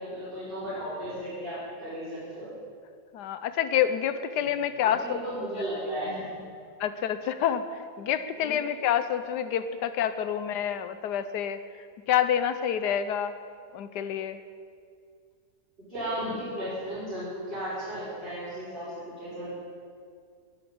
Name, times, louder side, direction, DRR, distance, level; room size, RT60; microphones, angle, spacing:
voice 1, 0.0-2.5 4.8-6.3 8.4-8.6 15.9-19.5, equal, 35° right, -12 dB, 5.2 m, -35 dB
voice 2, 3.1-5.2 6.8-11.6 12.1-13.3 13.7-14.4, left 9 dB, 85° left, 11 dB, 1.3 m, -28 dB
11.0 x 10.5 x 8.6 m, 2.2 s
omnidirectional pair, 1.7 m